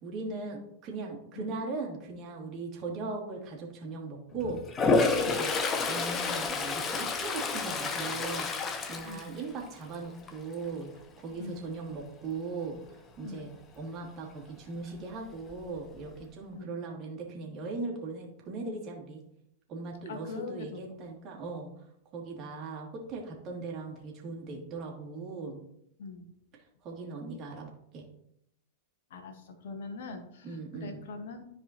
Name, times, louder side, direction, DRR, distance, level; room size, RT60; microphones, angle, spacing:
voice 1, 0.0-4.6 5.2-5.6 5.9-10.9 11.2-12.8 13.2-19.2 19.7-21.7 22.1-25.6 26.8-27.7 27.9-28.0 30.4-31.0, right 3 dB, 35° right, -1 dB, 2.6 m, -39 dB
Toilet flush, 4.7-9.9 10.3-10.7 15.1-15.2 15.5-16.2, left 4 dB, 25° left, 0.9 m, -29 dB
voice 2, 11.4-11.7 13.2-13.4 16.5-16.7 20.1-20.8 26.0-26.2 29.1-31.4, left 4 dB, 55° left, 6 dB, 1.5 m, -42 dB
13.5 x 4.9 x 3.0 m, 0.75 s
figure-of-eight pair, 90°, 0 cm